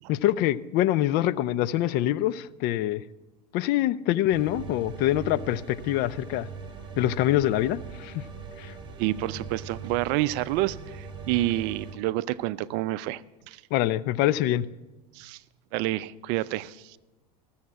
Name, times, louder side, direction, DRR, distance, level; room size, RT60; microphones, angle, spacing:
voice 1, 0.1-3.0 3.5-6.5 7.0-8.2 8.6-8.7 13.7-14.7, left 13 dB, 50° left, 0.5 m, -25 dB
sound 1, 4.3-11.9, right 5 dB, 25° right, 2.6 m, -40 dB
voice 2, 9.0-13.2 13.5-13.6 15.1-15.4 15.7-17.0, right 16 dB, 55° right, 0.5 m, -28 dB
14.5 x 7.1 x 7.6 m
hypercardioid pair, 95°, 21 cm